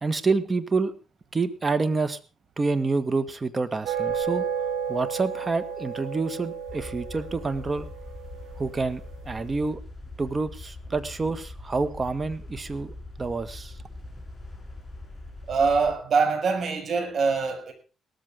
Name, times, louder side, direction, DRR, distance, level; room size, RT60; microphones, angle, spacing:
voice 1, 0.0-0.9 1.3-2.2 2.6-4.4 4.9-7.9 8.6-9.0 9.3-9.8 10.2-13.7, right 3 dB, 30° right, 12 dB, 1.8 m, -27 dB
sound 1, 3.8-9.4, right 7 dB, 90° right, 6.6 m, -32 dB
sound 2, 6.7-15.9, left 2 dB, 15° left, 6.7 m, -42 dB
voice 2, 15.5-17.7, right 4 dB, 55° right, 5 dB, 6.3 m, -24 dB
18.0 x 14.0 x 3.8 m, 0.35 s
cardioid pair, 90°, 0 cm